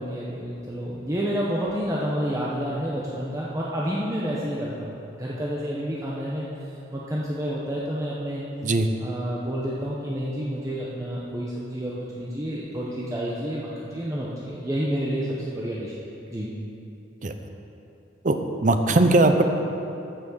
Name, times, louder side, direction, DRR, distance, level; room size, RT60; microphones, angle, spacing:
voice 1, 0.0-6.5 6.9-8.4 9.0-15.9 16.3-16.5, equal, 15° right, -6 dB, 1.0 m, -29 dB
voice 2, 18.2-19.4, right 2 dB, 40° right, 7 dB, 0.7 m, -19 dB
14.0 x 6.1 x 6.3 m, 2.9 s
head